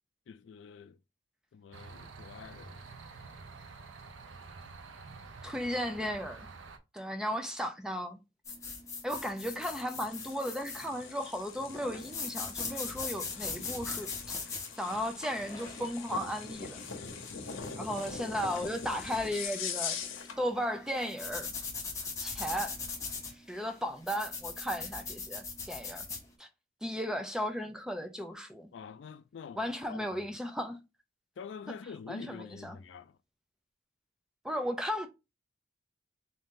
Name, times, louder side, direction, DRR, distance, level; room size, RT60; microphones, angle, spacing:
voice 1, 0.3-1.0 1.5-2.9 28.7-30.3 31.4-33.2, left 6 dB, 65° left, 0.3 m, -46 dB
sound 1, 1.7-6.8, right 4 dB, 75° right, 0.6 m, -48 dB
voice 2, 5.4-6.5 6.9-8.2 9.0-14.4 14.8-16.8 17.8-20.0 20.4-21.5 22.2-22.8 23.3-26.1 26.4-26.5 26.8-28.7 29.6-30.8 32.1-32.8 34.4-35.1, equal, 5° right, 0.4 m, -35 dB
sound 2, 8.4-26.2, left 4 dB, 15° left, 0.9 m, -41 dB
sound 3, 9.4-20.4, left 6 dB, 90° left, 0.8 m, -42 dB
3.7 x 2.7 x 3.6 m
head